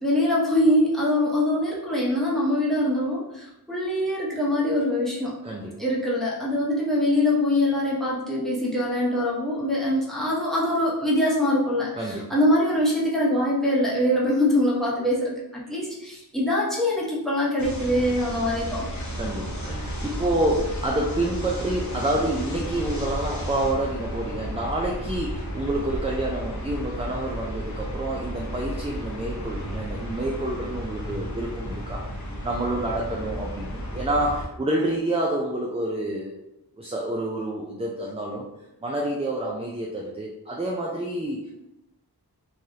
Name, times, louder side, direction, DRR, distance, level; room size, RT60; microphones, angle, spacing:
voice 1, 0.0-5.3 5.8-18.9, left 1 dB, ahead, -5 dB, 1.0 m, -23 dB
voice 2, 5.4-5.9 11.9-12.3 19.1-32.0 32.4-36.3 36.8-38.5 38.8-41.5, right 1 dB, 15° right, -2 dB, 0.4 m, -28 dB
sound 1, 17.6-34.5, equal, 45° left, 0.7 m, -33 dB
3.3 x 2.3 x 2.7 m, 0.89 s
wide cardioid pair, 45°, 40 cm